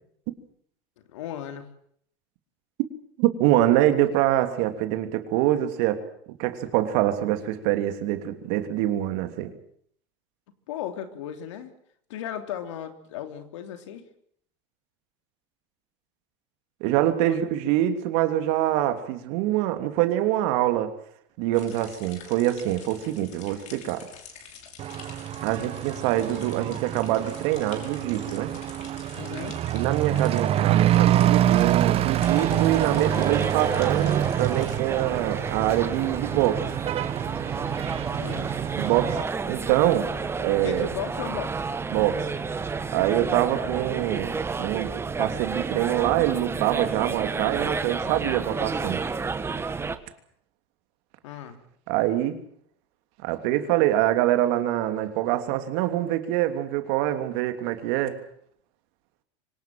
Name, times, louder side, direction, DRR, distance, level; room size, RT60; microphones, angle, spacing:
voice 1, 1.1-1.7 10.7-11.7 12.1-14.0 17.3-17.4 29.1-29.6 38.2-38.5 40.6-41.7 51.2-51.6, left 10 dB, 85° left, 8 dB, 3.3 m, -35 dB
voice 2, 3.2-6.0 6.4-9.5 16.8-20.9 21.4-24.1 25.4-28.5 29.7-36.7 38.8-39.2 39.5-40.1 40.4-40.9 41.9-42.3 42.9-44.3 44.6-49.0 51.9-52.4 53.2-58.2, right 13 dB, 70° right, 8 dB, 3.1 m, -25 dB
sound 1, 21.5-34.8, left 7 dB, 50° left, 5.9 m, -47 dB
Truck / Accelerating revving vroom, 24.8-39.2, right 12 dB, 40° right, 1.0 m, -26 dB
sound 2, 32.2-50.0, right 4 dB, 15° right, 1.7 m, -31 dB
25.0 x 18.5 x 7.8 m, 0.65 s
supercardioid pair, 115°, 15 cm